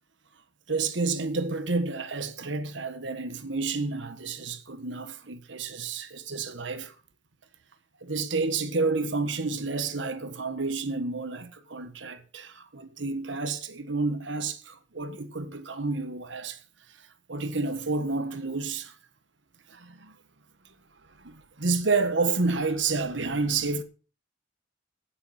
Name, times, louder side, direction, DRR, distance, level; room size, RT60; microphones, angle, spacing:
voice 1, 0.7-6.9 8.0-16.6 17.3-18.9 19.7-20.2 21.2-23.8, right 3 dB, 75° right, 1.4 m, -30 dB
16.0 x 7.1 x 5.5 m
head